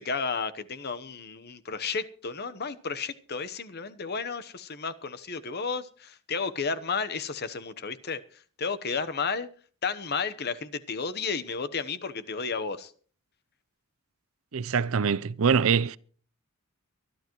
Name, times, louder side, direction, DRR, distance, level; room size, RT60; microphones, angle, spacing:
voice 1, 0.0-9.5 9.8-12.9, left 5 dB, 45° left, 1.0 m, -32 dB
voice 2, 14.5-16.0, right 6 dB, 65° right, 0.5 m, -24 dB
23.5 x 12.0 x 3.1 m
head